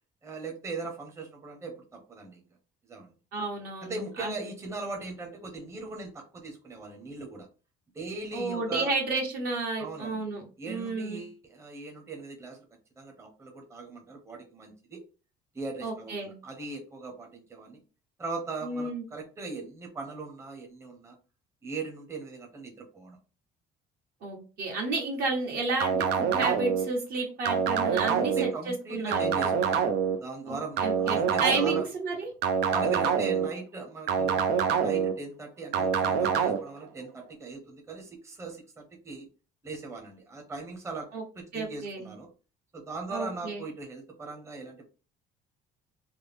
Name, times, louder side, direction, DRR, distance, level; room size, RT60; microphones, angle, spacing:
voice 1, 0.2-2.4 2.9-3.1 3.8-7.5 7.9-8.9 9.8-10.2 10.6-12.6 13.0-15.0 15.5-17.8 18.2-21.2 21.6-23.2 28.0-29.8 30.2-31.9 32.6-34.4 34.8-39.3 39.6-42.3 42.7-44.8, right 3 dB, 15° right, 2 dB, 0.7 m, -39 dB
voice 2, 3.3-4.3 8.3-11.2 15.8-16.3 18.6-19.0 24.2-29.2 30.5-32.3 41.1-41.2 41.5-42.1 43.1-43.6, right 3 dB, 70° right, 0 dB, 1.5 m, -32 dB
sound 1, 25.8-26.8 27.4-28.5 29.1-30.1 30.8-31.8 32.4-33.5 34.1-35.1 35.7-36.6, right 7 dB, 90° right, 0.6 m, -25 dB
3.3 x 2.1 x 3.3 m, 0.35 s
cardioid pair, 110°, 17 cm